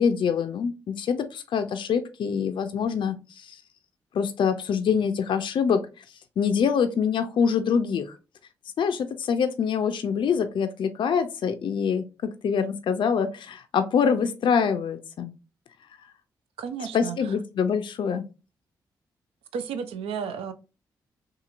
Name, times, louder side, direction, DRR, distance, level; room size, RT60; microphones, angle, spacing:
voice 1, 0.0-3.6 4.1-5.9 6.4-8.1 8.8-15.3 16.9-18.2, left 6 dB, 55° left, 0.4 m, -25 dB
voice 2, 16.6-17.4 19.5-20.5, right 6 dB, 75° right, 0.4 m, -33 dB
2.8 x 2.5 x 2.4 m
hypercardioid pair, 40°, 10 cm